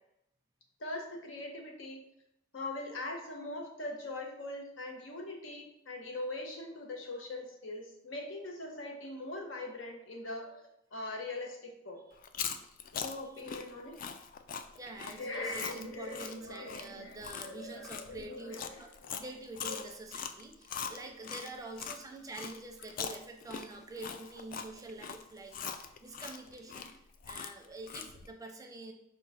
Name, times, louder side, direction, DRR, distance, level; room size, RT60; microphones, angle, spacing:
voice 1, 0.8-2.0 2.5-12.0 12.9-14.0 15.1-19.1 19.6-19.8 20.9-21.0, left 2 dB, 85° left, 2 dB, 0.9 m, -42 dB
Chewing mastication, 12.2-22.0 22.3-28.3, left 7 dB, 45° left, 0.3 m, -41 dB
voice 2, 14.8-18.9 19.2-28.9, right 2 dB, 20° right, 3 dB, 0.5 m, -46 dB
5.1 x 2.2 x 4.1 m, 0.81 s
head